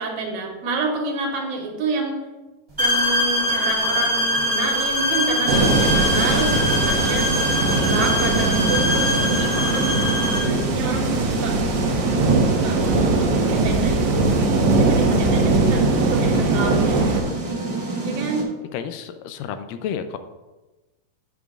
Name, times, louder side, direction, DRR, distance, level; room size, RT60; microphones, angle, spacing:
voice 1, 0.0-2.2 2.8-7.3 7.7-9.9 10.4-11.6 12.6-14.3 14.8-17.2 18.0-18.4, right 3 dB, 80° right, 0 dB, 3.0 m, -28 dB
sound 1, 2.8-10.5, left 1 dB, 10° right, 1.8 m, -23 dB
sound 2, 5.5-17.2, right 3 dB, 65° right, 1.8 m, -20 dB
sound 3, 7.9-18.4, right 3 dB, 35° right, 1.0 m, -29 dB
voice 2, 18.7-20.2, left 8 dB, 80° left, 9 dB, 2.1 m, -31 dB
12.0 x 7.6 x 2.4 m, 1.1 s
omnidirectional pair, 4.0 m